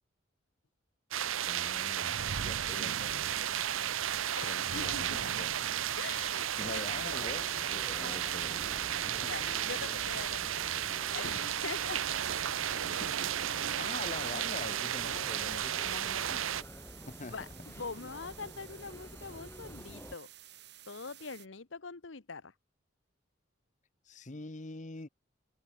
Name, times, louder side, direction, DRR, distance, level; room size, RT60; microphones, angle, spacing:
sound 1, 1.1-16.6, right 10 dB, 85° right, 0.7 m, -33 dB
voice 1, 1.5-3.5 4.5-5.5 6.6-8.6 9.1-9.3 12.6-16.6 17.2-17.4 24.0-25.1, left 2 dB, 40° left, 1.0 m, -45 dB
sound 2, 2.8-21.5, right 13 dB, 55° right, 6.7 m, -54 dB
voice 2, 4.4-5.2 6.0-7.4 9.2-12.0 17.2-20.3 20.9-22.5, left 4 dB, 75° left, 1.0 m, -43 dB
sound 3, 6.6-20.2, equal, 15° left, 5.3 m, -49 dB
head